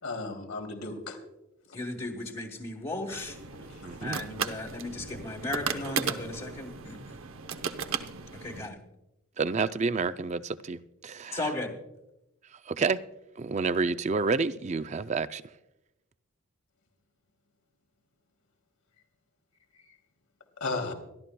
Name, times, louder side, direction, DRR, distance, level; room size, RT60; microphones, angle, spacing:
voice 1, 0.0-1.2 1.7-1.8 3.1-3.2 3.5-4.0 20.6-20.9, left 3 dB, 85° left, 2.7 m, -35 dB
voice 2, 1.7-3.4 4.0-7.2 8.3-8.8 11.3-11.7, left 2 dB, 25° left, 1.2 m, -36 dB
sound 1, 3.1-8.7, right 6 dB, 70° right, 0.8 m, -36 dB
voice 3, 3.8-4.2 9.4-11.5 12.7-13.0 13.4-15.4, right 4 dB, 30° right, 0.3 m, -29 dB
25.5 x 12.5 x 2.2 m
head